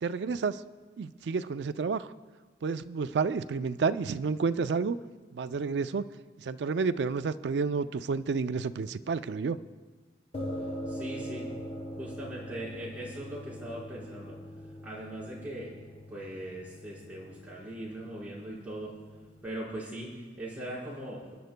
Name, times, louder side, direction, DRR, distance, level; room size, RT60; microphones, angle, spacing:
voice 1, 0.0-0.6 1.0-2.1 2.6-5.0 5.3-6.1 6.4-9.6, right 5 dB, 80° right, 13 dB, 0.4 m, -30 dB
sound 1, 10.3-19.5, equal, 35° left, 0.8 m, -42 dB
voice 2, 10.9-11.5 12.0-14.4 14.8-15.7 16.1-18.9 19.4-21.4, right 1 dB, 10° right, -8 dB, 4.6 m, -40 dB
29.0 x 10.5 x 2.2 m, 1.4 s
head